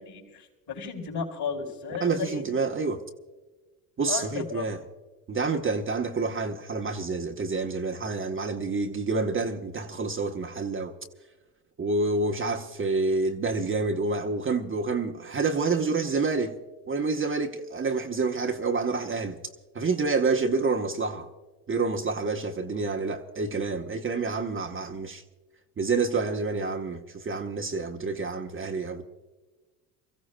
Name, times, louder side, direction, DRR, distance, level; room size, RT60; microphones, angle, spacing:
voice 1, 0.0-2.5 4.1-4.6, left 5 dB, 55° left, 4.6 m, -34 dB
voice 2, 2.0-3.0 4.0-4.8 5.3-10.9 11.8-16.6 16.9-19.4 19.7-21.3 21.7-25.2 25.8-29.0, right 3 dB, 25° right, 1.0 m, -28 dB
29.5 x 15.0 x 2.2 m
supercardioid pair, 80°, 48 cm